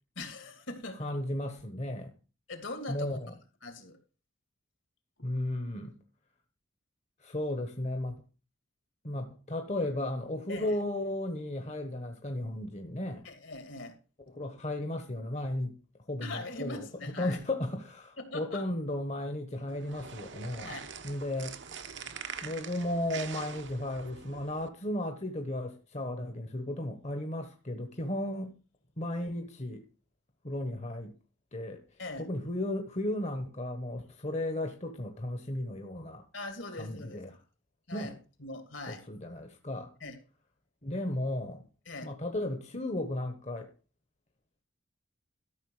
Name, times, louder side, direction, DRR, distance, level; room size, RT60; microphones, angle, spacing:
voice 1, 0.2-1.1 2.5-3.2 3.6-4.0 10.5-10.8 13.2-14.0 16.2-17.4 18.2-18.6 20.6-20.8 32.0-32.2 36.3-37.2 37.9-38.1 38.4-39.1 40.0-40.2 41.9-42.1, left 2 dB, 70° left, 2.8 m, -41 dB
voice 2, 1.0-2.1 2.9-3.3 5.2-6.0 7.2-8.1 9.0-13.3 14.3-15.7 16.1-20.8 21.0-21.6 22.4-28.5 29.0-29.9 30.4-31.2 31.5-31.8 32.2-36.2 36.8-37.3 37.9-38.2 38.9-39.9 40.8-41.7 42.0-43.7, left 1 dB, 35° left, 1.1 m, -35 dB
sound 1, 19.7-24.7, right 6 dB, 65° right, 1.0 m, -44 dB
13.5 x 6.7 x 4.9 m
head